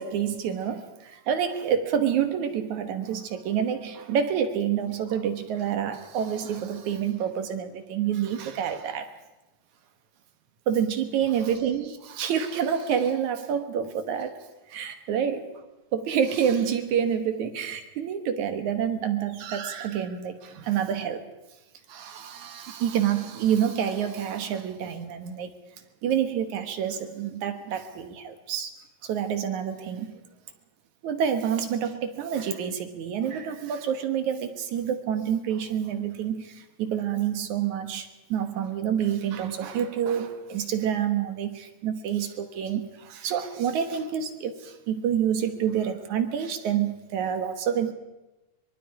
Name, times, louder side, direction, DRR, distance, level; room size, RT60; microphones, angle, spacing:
voice 1, 0.0-9.1 10.7-15.6 15.9-21.3 21.9-25.5 26.0-28.7 29.0-30.2 31.0-47.9, right 8 dB, 60° right, 9 dB, 2.2 m, -28 dB
24.5 x 23.0 x 4.8 m, 1.0 s
omnidirectional pair, 4.7 m